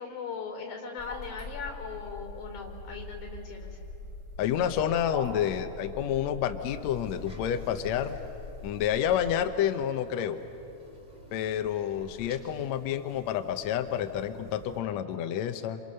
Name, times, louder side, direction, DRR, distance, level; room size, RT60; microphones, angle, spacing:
voice 1, 0.0-3.8, left 5 dB, 55° left, 3 dB, 4.9 m, -39 dB
sound 1, 1.0-9.3, left 2 dB, 30° left, 3.3 m, -42 dB
voice 2, 4.4-8.2 8.6-10.4 11.3-15.8, left 10 dB, 80° left, 8 dB, 1.6 m, -29 dB
sound 2, 6.6-14.8, right 2 dB, 10° right, 3.5 m, -52 dB
29.5 x 27.5 x 6.6 m, 2.9 s
omnidirectional pair, 4.3 m